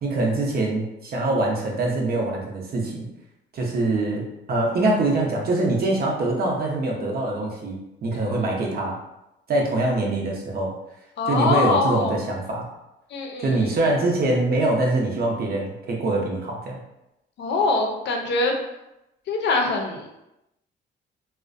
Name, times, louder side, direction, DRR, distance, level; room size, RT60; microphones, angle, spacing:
voice 1, 0.0-3.1 3.5-9.0 9.5-10.7 11.2-12.6 13.4-16.8, right 2 dB, 50° right, -1 dB, 0.7 m, -24 dB
voice 2, 11.2-12.1 13.1-13.7 17.4-18.5 19.3-20.1, left 3 dB, 65° left, 2 dB, 0.5 m, -23 dB
2.4 x 2.1 x 2.5 m, 0.90 s
cardioid pair, 90°, 20 cm